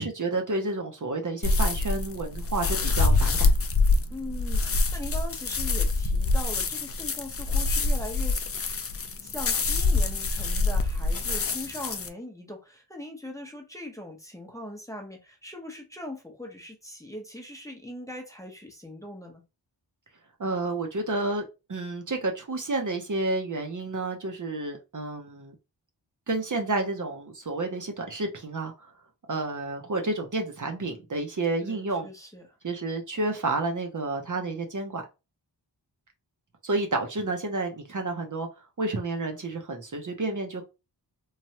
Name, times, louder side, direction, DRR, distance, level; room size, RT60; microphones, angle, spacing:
voice 1, 0.0-3.5 20.4-25.5 26.3-28.9 29.3-32.1 32.6-35.0 36.6-38.5 38.8-40.6, right 2 dB, 45° right, 0.7 m, -30 dB
sound 1, 1.4-12.1, left 3 dB, 35° left, 0.4 m, -25 dB
voice 2, 4.1-8.4 9.2-19.4 31.6-32.5, left 1 dB, 5° left, 0.8 m, -40 dB
3.1 x 2.2 x 2.8 m
wide cardioid pair, 60°, 44 cm